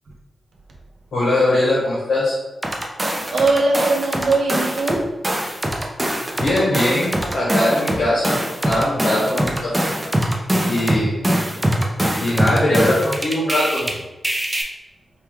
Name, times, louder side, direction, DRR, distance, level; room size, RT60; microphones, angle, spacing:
voice 1, 1.1-2.4 6.4-8.4 8.6-9.9 10.7-11.3 12.2-13.8, left 1 dB, 90° left, -7 dB, 0.9 m, -20 dB
sound 1, 2.6-5.0 5.2-13.9 14.2-14.6, equal, 15° right, 0.5 m, -22 dB
voice 2, 3.0-5.1, right 3 dB, 60° right, 0 dB, 0.7 m, -20 dB
4.4 x 2.2 x 3.4 m, 1.1 s
wide cardioid pair, 165°, 0 cm